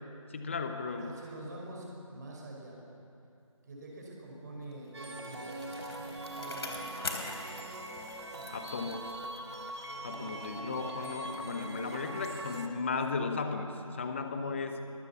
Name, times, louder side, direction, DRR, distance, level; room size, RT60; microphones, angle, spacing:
voice 1, 0.3-1.1 8.5-9.0 10.0-14.8, left 4 dB, 20° left, 6 dB, 1.1 m, -35 dB
voice 2, 0.9-2.8 3.6-7.8 9.9-10.8 12.3-12.6 14.3-14.6, right 1 dB, 30° right, -2 dB, 4.9 m, -47 dB
Bicycle, 4.7-9.6 10.0-10.1, left 3 dB, 45° left, 3.6 m, -44 dB
sound 1, 4.9-12.7, right 1 dB, 50° right, 2.6 m, -42 dB
22.0 x 20.5 x 7.1 m, 2.7 s
figure-of-eight pair, 160°, 18 cm